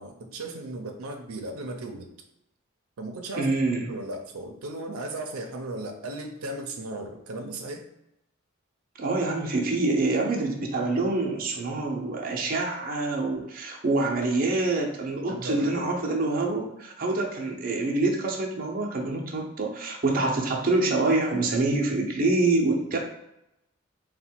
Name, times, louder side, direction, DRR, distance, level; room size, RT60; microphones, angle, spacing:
voice 1, 0.0-2.1 3.0-3.5 3.8-7.9 15.3-15.9, right 2 dB, 90° right, 3 dB, 0.6 m, -36 dB
voice 2, 3.4-3.9 9.0-23.0, right 2 dB, 40° right, 0 dB, 0.7 m, -26 dB
4.0 x 2.2 x 4.3 m, 0.84 s
head